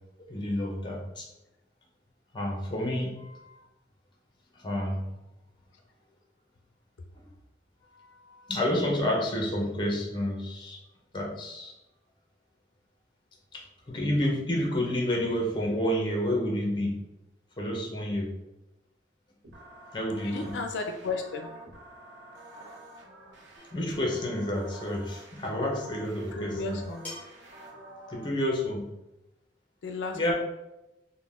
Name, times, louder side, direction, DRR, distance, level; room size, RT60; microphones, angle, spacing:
voice 1, 0.3-1.3 2.3-3.5 4.5-5.0 8.3-10.8 11.1-11.7 13.5-17.0 17.6-18.3 19.9-20.6 23.7-26.8 28.1-28.9 30.1-30.3, left 1 dB, 25° left, -1 dB, 0.7 m, -29 dB
sound 1, 19.4-28.3, right 1 dB, 80° right, 0.7 m, -48 dB
voice 2, 20.2-21.5 26.3-27.1 29.8-30.3, left 3 dB, 80° left, 4 dB, 0.4 m, -34 dB
sound 2, 23.5-23.9 25.4-25.5 27.0-27.5, left 2 dB, 10° left, 1.1 m, -44 dB
3.8 x 2.2 x 3.5 m, 0.94 s
head